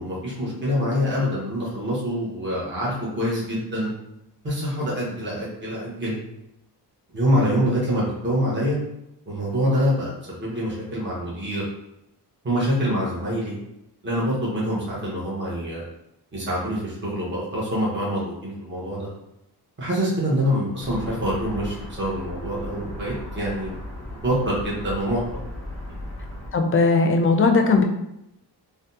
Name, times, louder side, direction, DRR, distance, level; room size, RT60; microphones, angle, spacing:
voice 1, 0.0-3.9 4.4-6.2 7.1-8.8 9.3-11.6 12.4-13.5 14.0-15.8 16.3-19.1 19.8-23.8 24.2-25.2, equal, 25° right, -7 dB, 1.1 m, -25 dB
sound 1, 20.8-26.5, left 1 dB, 5° left, 1.2 m, -36 dB
voice 2, 26.5-27.8, left 3 dB, 35° left, 4 dB, 0.4 m, -18 dB
3.4 x 2.2 x 2.7 m, 0.84 s
wide cardioid pair, 105°, 41 cm